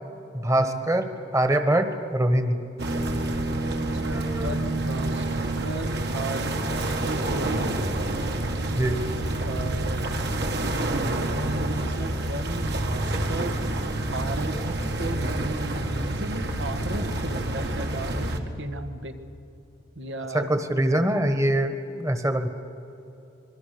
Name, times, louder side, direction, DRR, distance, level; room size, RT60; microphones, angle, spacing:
voice 1, 0.3-1.0 1.3-2.6 4.1-4.5 8.7-9.0 20.3-22.5, right 1 dB, 15° right, 8 dB, 1.4 m, -23 dB
sound 1, 2.8-18.4, right 1 dB, 60° right, 1.9 m, -28 dB
voice 2, 3.7-5.3 5.6-7.8 9.4-13.6 14.1-19.2 20.0-20.6, right 2 dB, 85° right, 6 dB, 1.6 m, -35 dB
26.5 x 22.5 x 6.8 m, 2.9 s
head